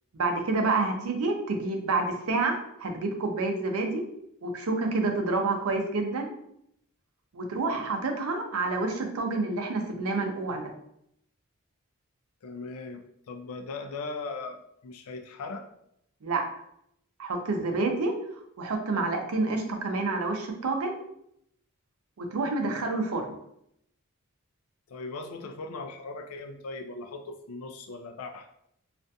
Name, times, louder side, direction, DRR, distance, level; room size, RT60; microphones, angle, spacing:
voice 1, 0.2-4.0 4.4-6.3 7.3-10.7 16.2-16.4 17.2-18.1 18.6-21.0 22.2-23.3, right 3 dB, 80° right, 4 dB, 0.5 m, -28 dB
voice 2, 12.4-15.7 24.9-28.5, left 3 dB, 90° left, 5 dB, 0.4 m, -39 dB
2.4 x 2.2 x 2.6 m, 0.75 s
head